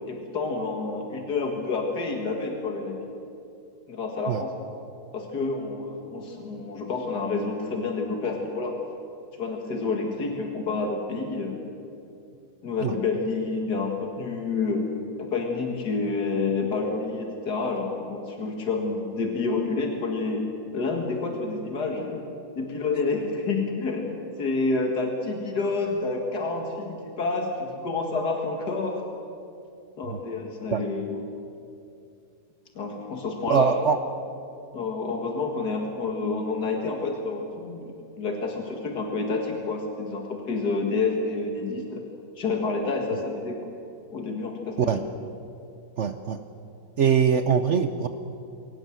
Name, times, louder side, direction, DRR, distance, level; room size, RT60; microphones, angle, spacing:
voice 1, 0.1-3.0 3.9-4.5 5.1-8.8 9.4-11.6 12.6-14.8 15.2-20.5 20.7-22.2 22.6-29.0 30.0-31.2 32.8-33.8 34.7-42.0 42.4-43.6 44.1-45.0, left 3 dB, 90° left, 2 dB, 2.5 m, -29 dB
voice 2, 33.5-34.0 44.8-45.0 46.0-46.4 47.0-48.1, right 7 dB, 55° right, 9 dB, 1.0 m, -22 dB
23.0 x 18.5 x 7.6 m, 2.6 s
omnidirectional pair, 1.7 m